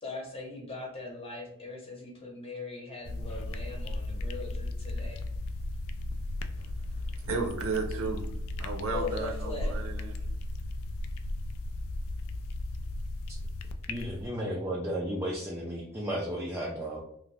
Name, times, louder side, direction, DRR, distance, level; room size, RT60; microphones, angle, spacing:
voice 1, 0.0-5.2 8.9-9.7, left 3 dB, 25° left, -1 dB, 0.9 m, -40 dB
sound 1, 3.0-14.3, left 2 dB, 65° left, 0.3 m, -35 dB
voice 2, 7.2-8.3 8.6-10.1, right 4 dB, 65° right, 1 dB, 0.7 m, -33 dB
voice 3, 13.9-17.0, equal, 10° right, -3 dB, 0.4 m, -33 dB
2.5 x 2.5 x 3.2 m, 0.72 s
head